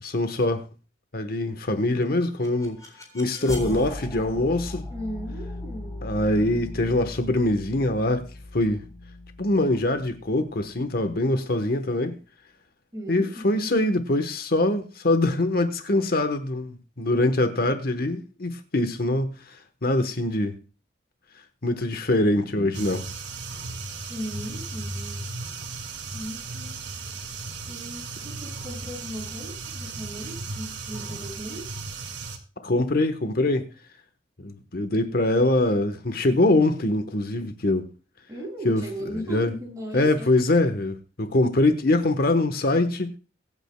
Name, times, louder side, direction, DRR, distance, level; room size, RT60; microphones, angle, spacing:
voice 1, 0.0-0.6 1.1-2.8 3.1-4.8 6.0-8.2 8.5-8.8 9.4-12.2 13.1-20.6 21.6-23.1 32.6-33.7 34.4-37.8 38.6-39.5 39.9-43.1, left 2 dB, 50° left, 1.1 m, -23 dB
sound 1, 2.0-11.0, left 1 dB, 20° left, 3.7 m, -38 dB
voice 2, 4.9-6.0 12.9-13.5 24.1-25.3 26.1-26.8 27.7-31.9 38.3-40.3, equal, 20° right, 6.1 m, -37 dB
sound 2, 22.7-32.4, right 3 dB, 65° right, 2.2 m, -36 dB
23.0 x 8.9 x 2.2 m
head